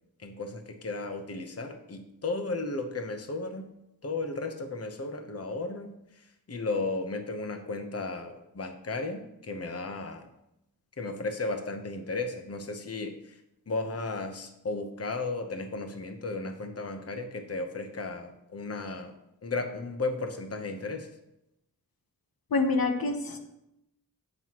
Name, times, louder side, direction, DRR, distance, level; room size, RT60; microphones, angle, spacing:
voice 1, 0.2-3.7 4.0-10.3 11.0-13.4 13.7-19.1 19.4-21.1, left 3 dB, 40° left, 5 dB, 0.9 m, -34 dB
voice 2, 22.5-23.4, left 3 dB, 75° left, 5 dB, 1.1 m, -26 dB
16.5 x 6.1 x 3.0 m, 0.85 s
wide cardioid pair, 105°, 35 cm